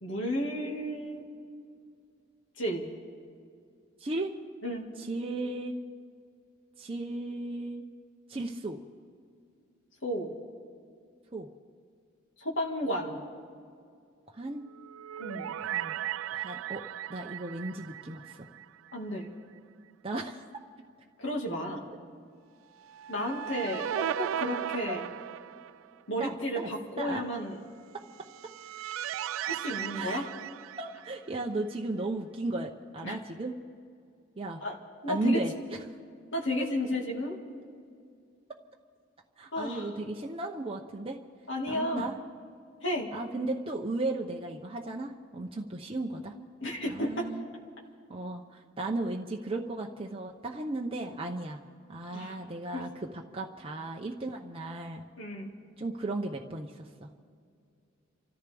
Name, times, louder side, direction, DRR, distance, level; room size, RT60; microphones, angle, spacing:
voice 1, 0.0-1.3 2.6-2.9 4.6-4.8 10.0-10.3 12.4-13.2 15.2-15.5 18.9-19.3 21.2-21.9 23.1-23.9 24.2-25.1 26.1-27.6 29.4-30.3 33.0-33.2 34.6-34.8 35.0-35.4 36.3-37.4 39.5-39.9 41.5-42.1 42.8-43.1 46.6-47.3 52.1-52.4 52.7-52.8 55.2-55.5, equal, 65° left, 0 dB, 2.0 m, -32 dB
voice 2, 4.0-4.3 5.0-5.8 6.8-7.9 8.3-8.8 11.3-11.5 14.3-14.7 15.6-16.0 16.3-16.8 17.1-18.4 20.0-20.4 24.9-25.0 26.2-26.7 27.0-27.2 27.9-28.0 29.9-30.3 30.8-33.5 34.4-34.6 35.1-35.8 39.4-41.2 41.7-42.2 43.1-46.3 46.8-47.4 48.1-51.6 51.9-53.1 53.3-55.0 55.8-57.1, right 2 dB, 30° right, 0 dB, 0.8 m, -35 dB
sound 1, 14.7-19.0 19.3-19.4 22.9-26.0 28.0-31.4, right 10 dB, 80° right, 0.3 m, -37 dB
29.5 x 14.0 x 3.5 m, 2.3 s
head